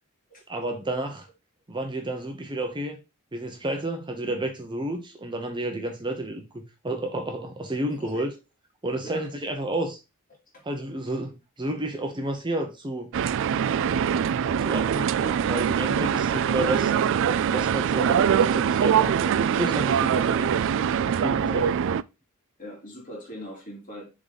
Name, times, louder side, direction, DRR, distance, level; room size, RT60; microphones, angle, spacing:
voice 1, 0.5-1.3 1.7-3.0 3.3-8.3 8.8-10.0 10.6-13.1 14.6-16.9 17.5-20.4 21.0-21.7, right 1 dB, 20° right, 0.8 m, -31 dB
voice 2, 7.9-8.3 9.0-9.3 10.5-10.6 15.2-15.4 15.8-16.2 21.4-21.8 22.6-24.1, equal, 40° left, 2.7 m, -41 dB
sound 1, 13.1-22.0, right 8 dB, 60° right, 0.3 m, -23 dB
6.9 x 3.8 x 4.0 m
head